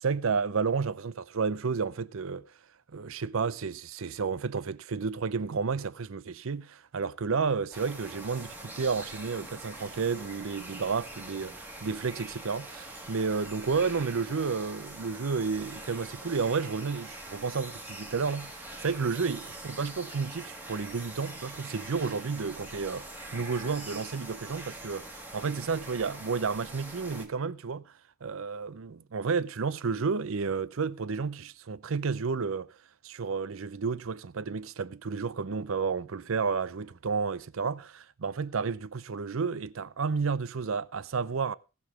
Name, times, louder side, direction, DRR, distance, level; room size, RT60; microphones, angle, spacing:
voice 1, 0.0-2.4 2.9-23.0 23.3-25.0 25.3-27.8 28.2-32.7 33.0-41.5, right 5 dB, 65° right, 0.6 m, -31 dB
sound 1, 7.7-27.3, right 1 dB, 10° right, 1.8 m, -44 dB
18.0 x 6.1 x 4.9 m
head